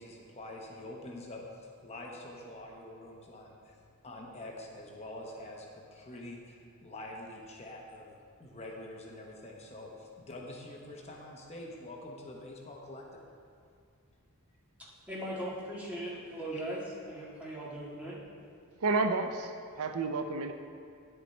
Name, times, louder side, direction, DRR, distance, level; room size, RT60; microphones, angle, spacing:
voice 1, 0.0-3.7 4.0-8.1 8.4-13.2 16.5-16.6, left 1 dB, 30° left, -1 dB, 0.9 m, -46 dB
voice 2, 14.8-16.8 17.1-18.2, right 1 dB, 5° right, -7 dB, 1.7 m, -39 dB
voice 3, 18.8-20.5, right 3 dB, 70° right, 7 dB, 0.5 m, -31 dB
10.5 x 6.8 x 4.3 m, 2.3 s
head